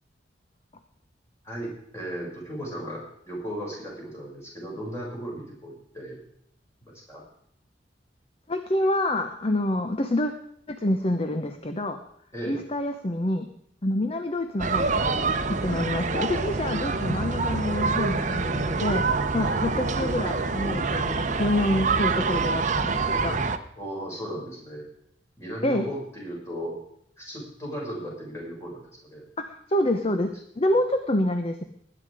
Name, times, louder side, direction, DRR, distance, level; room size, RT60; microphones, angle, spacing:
voice 1, 1.4-6.2 6.8-7.2 12.3-12.6 19.4-19.6 23.8-24.8 25.4-26.8 27.2-29.2, equal, 15° left, -4 dB, 6.4 m, -36 dB
voice 2, 8.5-10.3 10.7-12.0 12.4-13.5 13.8-15.0 15.6-23.3 25.6-25.8 29.5-30.3 30.6-31.6, left 1 dB, 35° left, 7 dB, 0.9 m, -27 dB
sound 1, 14.6-23.6, right 4 dB, 45° right, 0.9 m, -26 dB
20.0 x 9.8 x 4.9 m, 0.72 s
head